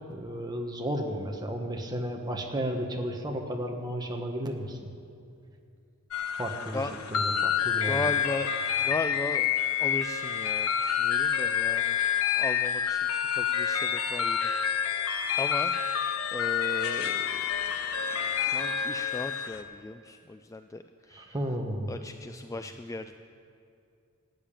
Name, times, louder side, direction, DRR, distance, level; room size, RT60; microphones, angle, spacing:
voice 1, 0.1-4.8 6.4-6.8 7.1-8.0 21.1-21.9, equal, 20° right, 2 dB, 1.3 m, -33 dB
sound 1, 6.1-19.6, left 8 dB, 80° left, 0.8 m, -28 dB
voice 2, 7.9-8.5 8.8-9.5 9.8-12.0 12.3-15.1 15.4-15.7 16.3-17.5 18.4-21.4 21.9-23.1, left 2 dB, 15° left, 8 dB, 0.3 m, -37 dB
14.0 x 8.9 x 8.9 m, 2.5 s
head